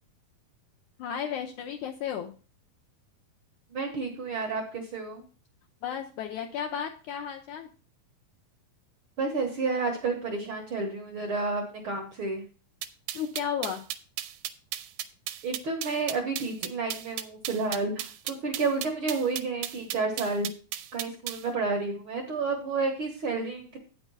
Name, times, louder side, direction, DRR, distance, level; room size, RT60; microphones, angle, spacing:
voice 1, 1.0-2.3 5.8-7.7 13.1-13.8, left 8 dB, 75° left, 3 dB, 1.8 m, -33 dB
voice 2, 3.7-5.2 9.2-12.5 15.4-20.5 20.9-23.8, right 3 dB, 65° right, 3 dB, 1.3 m, -30 dB
sound 1, 12.8-21.4, right 13 dB, 85° right, 2.5 m, -35 dB
9.0 x 6.0 x 5.4 m, 0.36 s
omnidirectional pair, 4.3 m